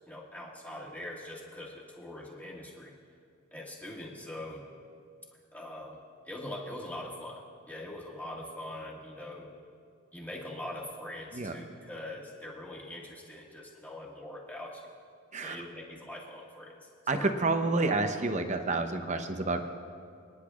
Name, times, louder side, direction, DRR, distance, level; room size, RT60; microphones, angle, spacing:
voice 1, 0.1-2.9 3.5-4.7 5.5-6.0 6.3-9.5 10.1-14.8 15.4-16.9 17.2-17.3, left 1 dB, 10° left, -3 dB, 1.7 m, -42 dB
voice 2, 17.1-19.7, right 3 dB, 35° right, 7 dB, 0.7 m, -29 dB
28.0 x 10.0 x 2.4 m, 2.3 s
head